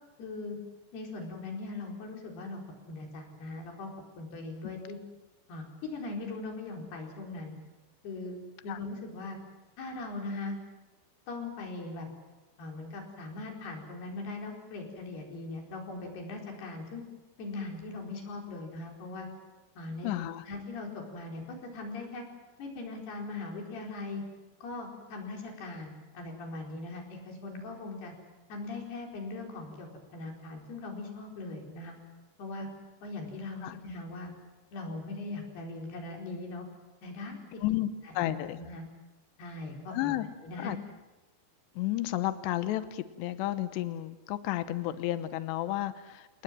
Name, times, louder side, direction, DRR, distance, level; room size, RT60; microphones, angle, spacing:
voice 1, 0.2-0.6 0.9-2.6 2.9-3.9 4.2-5.0 5.5-7.6 8.0-8.4 8.6-9.4 9.8-10.6 11.3-12.1 12.6-17.0 17.4-19.3 19.8-20.1 20.5-22.2 22.6-24.2 24.6-28.1 28.5-32.0 32.4-32.7 33.0-34.3 34.7-36.7 37.0-37.6 38.0-38.8 39.4-40.2 40.4-40.8, left 3 dB, 70° left, 1 dB, 6.4 m, -40 dB
voice 2, 20.0-20.4 33.6-33.8 37.6-38.6 39.9-40.3 40.6-40.8 41.8-46.4, left 14 dB, 85° left, 12 dB, 3.2 m, -32 dB
29.0 x 20.0 x 7.6 m, 1.1 s
omnidirectional pair, 4.9 m